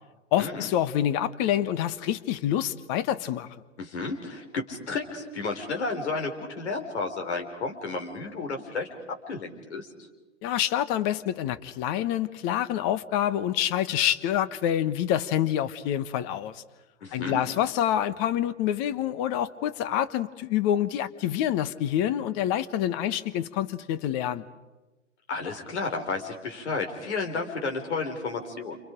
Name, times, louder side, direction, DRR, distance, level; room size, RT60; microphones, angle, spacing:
voice 1, 0.3-3.5 10.4-16.6 17.1-24.5, left 11 dB, 35° left, 15 dB, 1.2 m, -27 dB
voice 2, 3.8-9.0 9.3-9.9 17.0-17.4 25.3-28.8, left 3 dB, 65° left, 3 dB, 4.3 m, -32 dB
29.5 x 28.0 x 5.2 m, 1.1 s
figure-of-eight pair, 105°, 37 cm